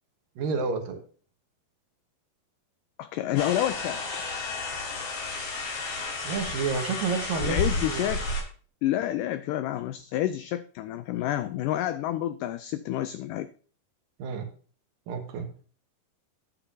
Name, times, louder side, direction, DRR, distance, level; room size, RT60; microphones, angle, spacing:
voice 1, 0.4-1.0 6.2-8.1 14.2-14.5 15.1-15.5, right 5 dB, 70° right, 2.8 m, -30 dB
voice 2, 3.0-4.2 7.3-8.3 8.8-13.5, left 13 dB, 85° left, 1.8 m, -29 dB
sound 1, 3.4-8.4, left 3 dB, 60° left, 4.1 m, -32 dB
11.0 x 10.0 x 2.7 m
omnidirectional pair, 4.3 m